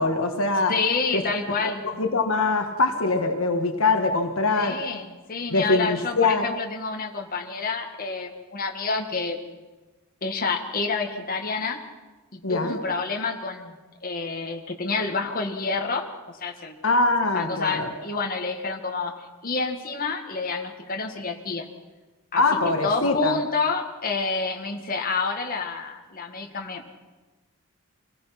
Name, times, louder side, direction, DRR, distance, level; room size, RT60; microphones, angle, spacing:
voice 1, 0.0-0.7 1.1-1.2 1.6-4.8 5.5-6.4 12.4-12.8 16.8-17.9 22.4-23.4, left 3 dB, 65° left, 5 dB, 1.6 m, -23 dB
voice 2, 0.7-1.9 4.5-9.5 10.2-11.8 12.3-13.7 14.0-16.7 17.3-21.7 22.3-22.4 22.8-26.9, left 4 dB, 40° left, 2 dB, 1.8 m, -28 dB
25.5 x 17.5 x 5.9 m, 1.2 s
head